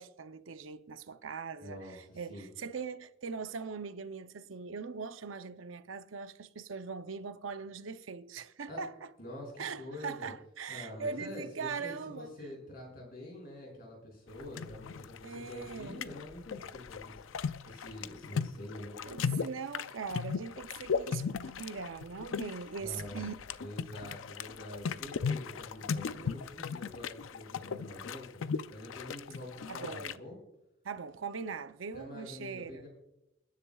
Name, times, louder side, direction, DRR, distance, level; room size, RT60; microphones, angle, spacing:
voice 1, 0.0-9.1 9.6-12.3 15.2-16.1 19.0-21.3 21.6-23.3 29.7-30.2 30.8-32.8, right 5 dB, 80° right, 0.7 m, -41 dB
voice 2, 1.6-2.5 8.7-8.8 9.2-10.3 10.7-17.1 17.7-18.9 22.8-23.2 23.6-28.4 28.7-30.4 31.9-32.9, left 1 dB, 50° left, 6.4 m, -46 dB
sound 1, 14.4-30.1, left 6 dB, 80° left, 0.5 m, -37 dB
28.5 x 10.5 x 2.4 m
head